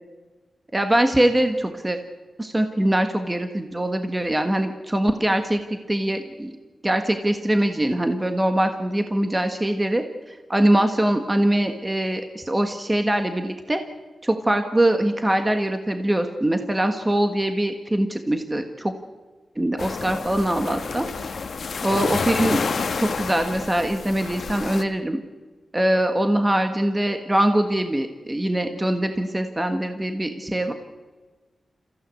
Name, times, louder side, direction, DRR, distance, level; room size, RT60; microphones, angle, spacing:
voice 1, 0.7-2.0 2.4-5.6 5.9-6.5 6.8-13.8 14.2-18.9 19.6-21.1 21.8-22.6 23.0-25.2 25.7-30.7, right 1 dB, 15° right, 6 dB, 1.4 m, -22 dB
sound 1, 19.8-24.8, left 5 dB, 60° left, 1.4 m, -29 dB
30.0 x 15.5 x 8.3 m, 1.3 s
wide cardioid pair, 160°, 0 cm